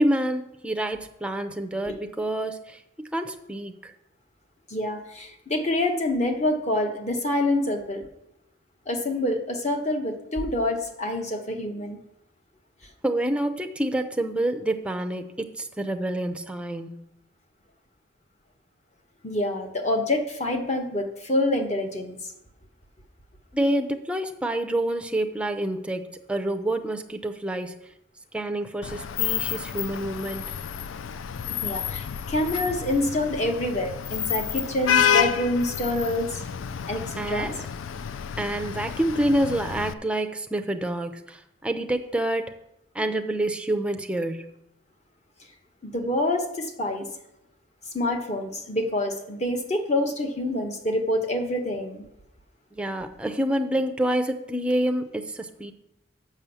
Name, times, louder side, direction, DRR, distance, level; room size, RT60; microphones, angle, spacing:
voice 1, 0.0-3.9 13.0-17.0 23.5-27.7 28.3-30.5 37.2-37.6 38.4-42.5 42.9-44.5 52.7-55.7, right 1 dB, 5° right, 6 dB, 0.5 m, -27 dB
voice 2, 4.7-8.0 8.9-12.0 19.2-22.2 31.6-36.4 36.9-37.5 45.8-47.1 47.9-52.0, left 1 dB, 35° left, 4 dB, 1.1 m, -26 dB
Vehicle horn car horn honking / Traffic noise roadway noise, 28.8-39.9, left 8 dB, 90° left, 0.4 m, -29 dB
7.2 x 6.1 x 7.0 m, 0.83 s
head